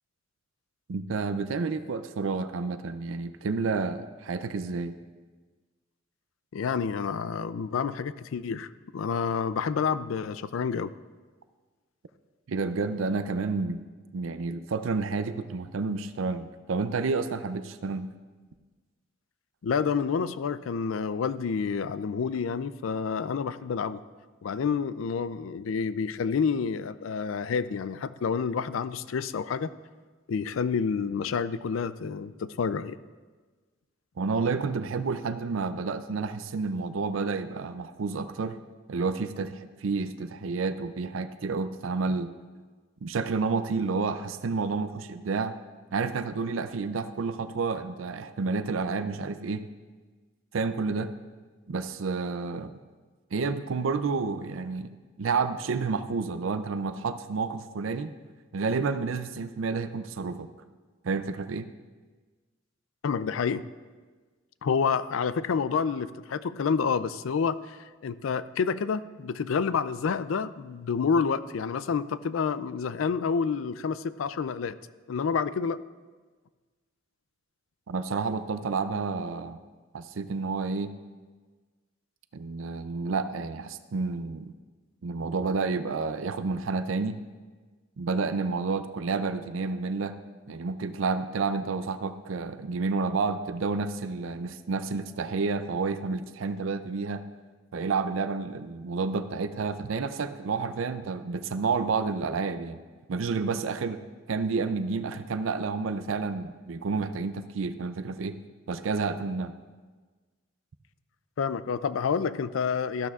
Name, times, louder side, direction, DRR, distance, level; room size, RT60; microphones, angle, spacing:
voice 1, 0.9-4.9 12.5-13.8 14.1-18.1 34.2-38.6 38.9-42.3 43.0-45.5 45.9-49.7 50.5-51.1 51.7-52.7 53.3-54.9 55.2-58.1 58.5-60.5 61.0-61.7 77.9-79.6 79.9-80.9 82.3-84.5 85.0-87.2 88.0-90.2 90.5-97.2 97.7-102.8 103.1-104.0 104.3-108.4 108.7-109.5, right 4 dB, 85° right, 11 dB, 0.5 m, -30 dB
voice 2, 6.5-10.9 19.6-24.0 24.4-29.7 30.3-33.0 63.0-63.7 64.6-67.8 68.0-74.8 75.1-75.8 111.4-113.1, left 6 dB, 85° left, 15 dB, 0.4 m, -29 dB
13.5 x 12.0 x 2.4 m, 1.4 s
head